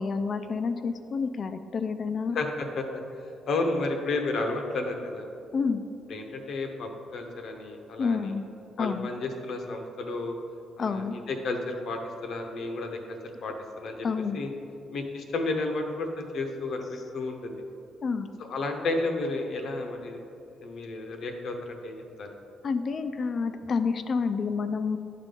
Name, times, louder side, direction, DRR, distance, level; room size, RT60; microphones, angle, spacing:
voice 1, 0.0-2.4 5.5-5.8 8.0-8.4 8.8-9.1 10.8-11.2 14.0-14.4 18.0-18.3 22.6-25.0, left 5 dB, 45° left, 9 dB, 0.3 m, -29 dB
voice 2, 2.3-2.8 3.5-5.3 6.1-8.3 8.8-10.3 10.8-14.1 14.3-14.5 14.9-17.6 18.5-20.2 20.6-22.3, left 2 dB, 65° left, 4 dB, 0.8 m, -32 dB
11.0 x 3.7 x 3.8 m, 2.6 s
cardioid pair, 90°, 0 cm